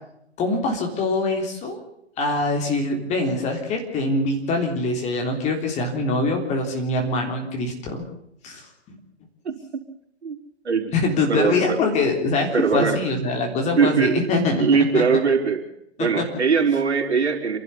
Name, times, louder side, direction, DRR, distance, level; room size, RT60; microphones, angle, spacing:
voice 1, 0.4-1.8 2.2-8.0 8.4-9.0 10.9-15.0 16.0-16.3, left 2 dB, 20° left, 3 dB, 3.5 m, -24 dB
voice 2, 9.4-9.8 10.2-10.4 10.6-10.9 11.3-11.8 12.5-13.0 13.8-14.3 14.6-15.6 16.0-17.6, right 5 dB, 65° right, 2 dB, 4.6 m, -21 dB
28.0 x 12.0 x 8.4 m, 0.77 s
figure-of-eight pair, 130°, 35 cm